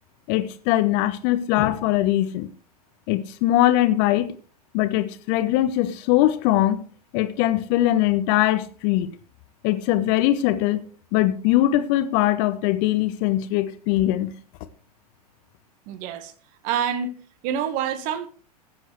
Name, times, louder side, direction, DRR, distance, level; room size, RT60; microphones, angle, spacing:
voice 1, 0.3-2.5 3.1-4.3 4.7-6.8 7.1-9.1 9.6-10.8 11.1-14.3, left 14 dB, 45° left, 1.0 m, -21 dB
voice 2, 15.9-16.3 16.6-17.1 17.4-18.3, right 8 dB, 40° right, 1.4 m, -26 dB
15.5 x 7.7 x 3.2 m
figure-of-eight pair, 95°, 20 cm